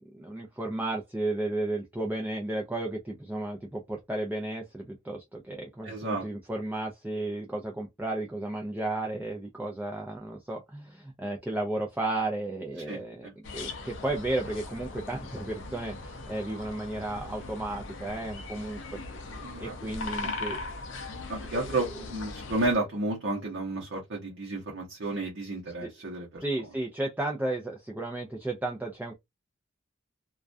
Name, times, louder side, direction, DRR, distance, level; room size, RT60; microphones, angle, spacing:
voice 1, 0.1-19.3 19.6-20.6 21.5-21.6 25.8-25.9 26.4-29.2, right 2 dB, 10° right, 0.4 m, -33 dB
voice 2, 5.8-6.3 12.9-13.3 19.4-19.8 20.2-20.5 21.3-26.4, right 2 dB, 65° right, 0.8 m, -32 dB
sound 1, 13.4-22.7, left 3 dB, 65° left, 0.5 m, -39 dB
2.3 x 2.2 x 2.4 m
head